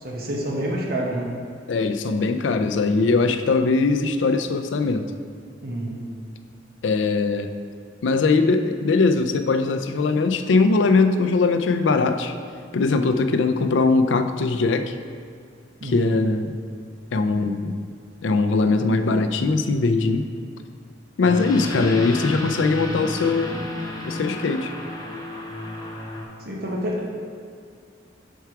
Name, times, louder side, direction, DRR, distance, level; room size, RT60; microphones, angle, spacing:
voice 1, 0.0-1.4 5.6-6.1 15.8-16.2 26.4-27.1, right 1 dB, 55° right, -3 dB, 1.0 m, -28 dB
voice 2, 1.7-5.1 6.8-7.5 8.0-12.3 12.7-15.0 15.8-16.5 17.1-17.8 18.2-20.3 21.2-23.6 24.0-24.7, left 3 dB, 85° left, 8 dB, 0.4 m, -21 dB
sound 1, 21.2-26.2, left 1 dB, 20° left, 0.6 m, -31 dB
4.6 x 4.6 x 5.8 m, 2.2 s
head